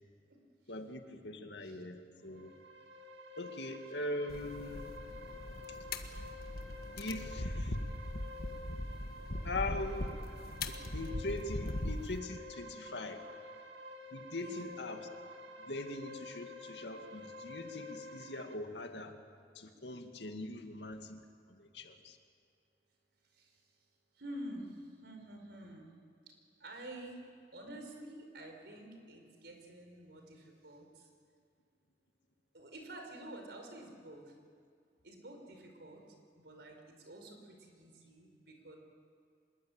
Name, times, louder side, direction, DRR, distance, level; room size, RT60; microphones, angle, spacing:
voice 1, 0.7-2.5 3.4-4.8 5.7-5.8 7.0-7.8 9.4-10.2 10.7-13.2 14.1-15.1 15.6-19.1 19.5-21.2 21.5-22.2, left 2 dB, 75° left, 5 dB, 2.2 m, -41 dB
sound 1, 2.2-18.6, left 2 dB, 85° right, 2.3 m, -50 dB
sound 2, 4.3-12.2, left 1 dB, 60° left, 1.6 m, -40 dB
voice 2, 14.4-14.7 23.3-23.6 24.1-25.9 26.6-27.2 27.5-31.1 32.5-34.3 35.0-36.0 36.4-38.8, right 1 dB, 70° right, 3 dB, 5.3 m, -49 dB
26.0 x 21.5 x 8.9 m, 2.2 s
head